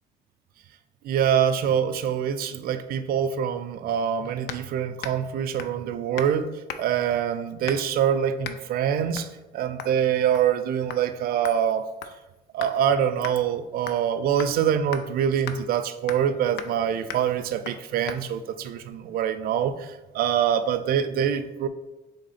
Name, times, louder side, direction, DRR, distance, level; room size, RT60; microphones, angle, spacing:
voice 1, 1.0-11.9 12.5-21.7, right 9 dB, 60° right, 0.4 m, -25 dB
sound 1, 4.5-4.7 5.0-5.3 5.6-5.8 6.2-6.4 6.7-7.0 7.7-8.0 8.4-8.6 9.1-9.3 9.8-10.0 10.3-10.6 10.9-11.0 11.4-12.8 13.2-13.4 13.9-14.1 14.4-14.5 14.9-15.0 15.5-15.6 16.1-16.3 16.6-16.8 17.1-17.3 17.6-17.8 18.1-18.2, left 8 dB, 75° left, 0.4 m, -37 dB
3.7 x 3.4 x 4.1 m
cardioid pair, 110°, 17 cm